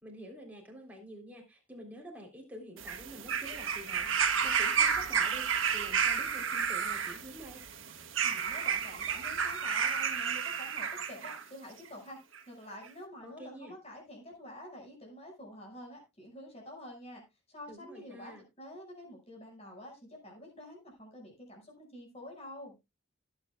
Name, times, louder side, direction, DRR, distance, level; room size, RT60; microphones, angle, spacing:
voice 1, 0.0-7.6 13.2-13.7 17.7-18.4, equal, 5° right, 0 dB, 3.5 m, -48 dB
sound 1, 2.8-11.4 12.3-12.4, right 7 dB, 70° right, 1.6 m, -31 dB
voice 2, 8.2-12.2 12.5-22.8, left 1 dB, 30° left, 1 dB, 5.8 m, -48 dB
18.5 x 8.6 x 2.4 m, 0.24 s
head